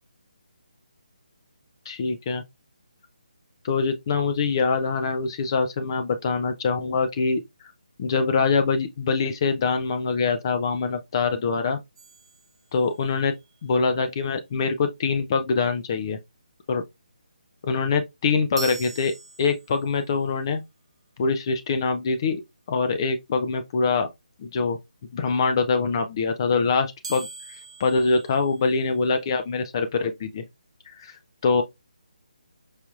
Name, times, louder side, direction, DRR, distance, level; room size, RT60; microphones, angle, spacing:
voice 1, 1.9-2.4 3.6-7.4 8.0-11.8 12.7-13.3 13.6-16.2 16.7-16.8 17.6-20.6 21.2-22.4 22.7-24.1 24.4-24.8 25.1-27.3 27.8-30.4 31.0-31.1 31.4-31.6, left 4 dB, 35° left, 0.5 m, -24 dB
sound 1, 12.0-13.3 18.6-20.0 27.0-29.2, right 4 dB, 45° right, 0.5 m, -41 dB
4.8 x 2.8 x 2.4 m
figure-of-eight pair, 150°, 4 cm